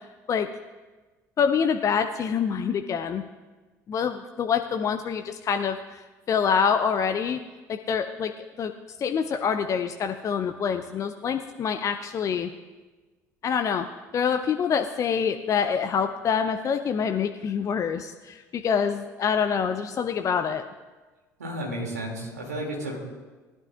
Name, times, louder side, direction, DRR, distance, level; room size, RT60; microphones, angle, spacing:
voice 1, 1.4-3.2 3.9-7.4 7.7-8.3 8.6-8.7 9.0-12.5 13.4-13.9 14.1-20.6, left 7 dB, 40° left, 7 dB, 0.6 m, -26 dB
voice 2, 21.4-23.0, right 1 dB, 80° right, -1 dB, 2.5 m, -32 dB
19.0 x 12.0 x 2.5 m, 1.3 s
figure-of-eight pair, 60°, 9 cm